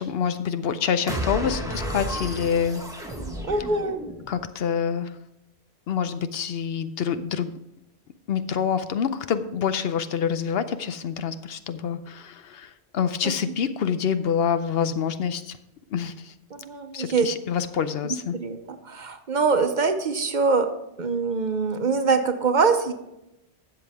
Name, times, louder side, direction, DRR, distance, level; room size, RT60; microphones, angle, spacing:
voice 1, 0.0-2.8 4.3-5.1 5.9-7.5 8.3-15.5 15.9-16.3 16.9-18.4, left 7 dB, 70° left, 11 dB, 0.8 m, -26 dB
sound 1, 1.1-4.4, equal, 5° right, 1.3 m, -32 dB
voice 2, 3.4-4.0 13.2-13.3 16.5-17.3 18.0-20.7 21.0-22.9, right 4 dB, 50° right, 8 dB, 0.8 m, -24 dB
12.5 x 7.7 x 3.4 m, 0.88 s
omnidirectional pair, 1.1 m